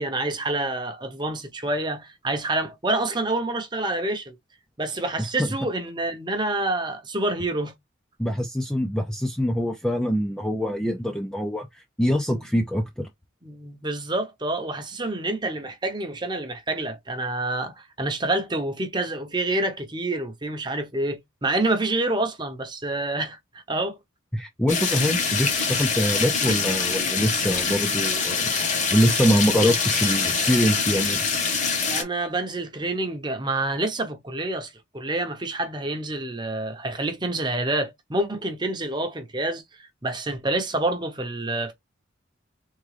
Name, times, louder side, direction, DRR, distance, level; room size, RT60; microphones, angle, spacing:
voice 1, 0.0-4.4 4.8-7.7 12.3-12.4 13.4-24.0 31.9-39.6 40.0-41.7, right 2 dB, 20° right, 0.8 m, -27 dB
voice 2, 8.2-13.1 24.3-28.5 28.9-31.2, equal, 5° left, 0.5 m, -24 dB
sound 1, 24.7-32.0, left 5 dB, 35° left, 1.1 m, -24 dB
3.7 x 3.7 x 3.3 m
head